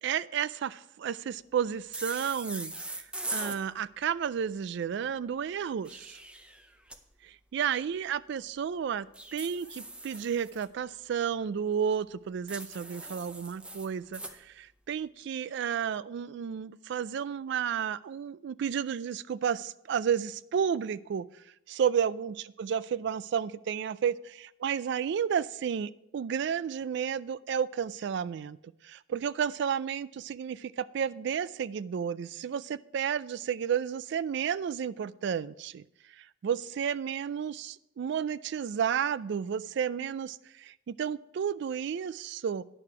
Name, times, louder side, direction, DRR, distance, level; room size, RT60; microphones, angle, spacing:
voice 1, 0.0-3.1 3.3-6.2 7.2-28.6 28.8-35.8 36.2-42.6, right 7 dB, 60° right, 0.3 m, -32 dB
sound 1, 1.9-3.6 5.6-7.0 9.1-10.6 12.5-14.4, right 1 dB, 5° right, 0.5 m, -40 dB
9.8 x 6.6 x 4.9 m
head